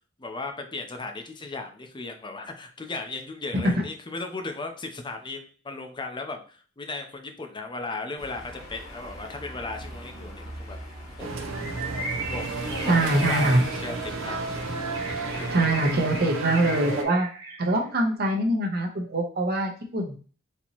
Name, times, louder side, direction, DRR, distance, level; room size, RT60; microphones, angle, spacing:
voice 1, 0.2-10.8 11.2-11.3 11.6-11.9 12.3-14.6 15.0-15.6, left 3 dB, 25° left, 5 dB, 0.5 m, -36 dB
sound 1, 8.2-16.2, equal, 85° left, 1.6 m, -41 dB
sound 2, 11.2-17.0, right 3 dB, 80° right, 0.5 m, -32 dB
Bird, 11.5-17.8, right 2 dB, 15° right, 1.0 m, -37 dB
voice 2, 12.9-13.6 15.5-17.3 17.6-20.2, right 1 dB, 50° right, 2 dB, 0.9 m, -23 dB
4.3 x 2.9 x 2.8 m, 0.40 s
head